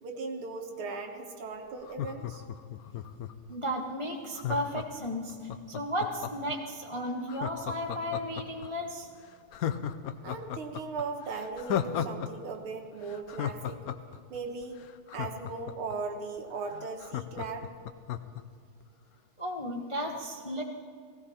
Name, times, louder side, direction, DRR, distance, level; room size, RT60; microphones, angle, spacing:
voice 1, 0.0-2.4 10.2-13.8 14.3-14.8 15.1-17.7, right 4 dB, 80° right, 3 dB, 2.3 m, -38 dB
Laughter, 1.8-3.5 4.3-6.5 7.3-8.7 9.0-9.1 9.5-12.3 12.5-12.6 13.0-15.9 16.4-16.5 16.7-18.4 18.8-18.9, left 10 dB, 75° left, 0.8 m, -35 dB
voice 2, 3.5-9.1 19.4-20.6, equal, 25° left, 1 dB, 0.6 m, -34 dB
17.0 x 17.0 x 4.3 m, 2.2 s
omnidirectional pair, 2.3 m